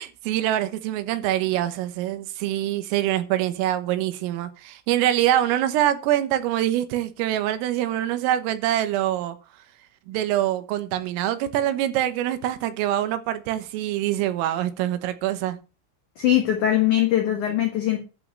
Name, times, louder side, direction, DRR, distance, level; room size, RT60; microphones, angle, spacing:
voice 1, 0.0-9.4 10.1-15.6, right 12 dB, 85° right, 3.7 m, -24 dB
voice 2, 16.2-18.0, left 12 dB, 85° left, 1.7 m, -21 dB
11.5 x 5.1 x 7.4 m
omnidirectional pair, 5.9 m